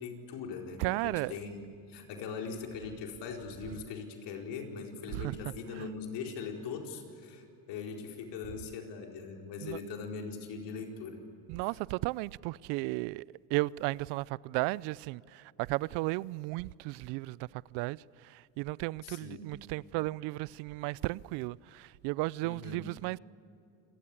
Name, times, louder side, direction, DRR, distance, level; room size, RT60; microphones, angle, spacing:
voice 1, 0.0-11.2 19.0-19.4 22.4-22.8, left 5 dB, 65° left, 4.5 m, -41 dB
voice 2, 0.8-1.3 5.1-5.4 5.8-5.9 9.6-9.8 11.5-13.2 13.5-23.2, right 21 dB, 70° right, 0.6 m, -34 dB
28.0 x 20.0 x 8.5 m
supercardioid pair, 100°, 44 cm